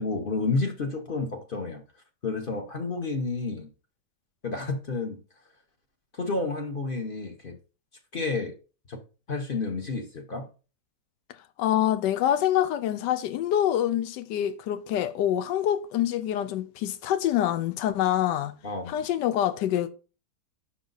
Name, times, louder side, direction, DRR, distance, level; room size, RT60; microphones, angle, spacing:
voice 1, 0.0-1.8 2.2-3.7 4.4-5.2 6.1-7.6 8.1-8.5 8.9-9.0 9.3-10.5 18.6-19.0, left 3 dB, 40° left, 0.9 m, -30 dB
voice 2, 11.6-18.5 18.9-19.9, left 11 dB, 85° left, 1.3 m, -26 dB
6.3 x 5.9 x 3.9 m
omnidirectional pair, 1.9 m